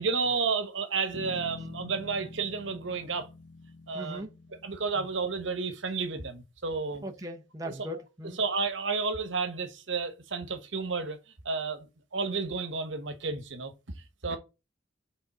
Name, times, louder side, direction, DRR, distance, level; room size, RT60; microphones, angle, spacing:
voice 1, 0.0-3.3 3.9-4.2 4.6-7.0 7.6-7.7 8.4-11.2 11.4-13.7 14.2-14.4, right 4 dB, 80° right, 1.1 m, -31 dB
Bass guitar, 1.1-5.6, left 2 dB, 85° left, 0.7 m, -46 dB
voice 2, 3.9-4.3 5.0-5.1 7.0-8.4, equal, 20° right, 0.8 m, -39 dB
5.2 x 3.7 x 5.5 m
head